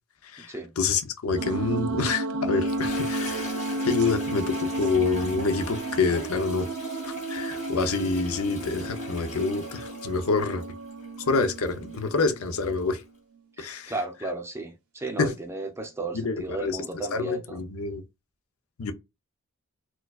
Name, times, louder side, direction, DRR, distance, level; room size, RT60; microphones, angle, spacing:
voice 1, 0.2-3.4 3.8-6.7 7.3-10.6 11.3-13.0 13.6-13.9 15.2-15.3 16.1-16.8 17.1-18.0 18.8-18.9, left 4 dB, 80° left, 0.6 m, -27 dB
sound 1, 1.3-12.8, right 2 dB, 85° right, 0.5 m, -32 dB
Toilet flush, 2.4-13.0, left 3 dB, 30° left, 1.9 m, -42 dB
voice 2, 13.6-17.6, right 2 dB, 10° right, 0.6 m, -34 dB
4.3 x 2.3 x 2.3 m
head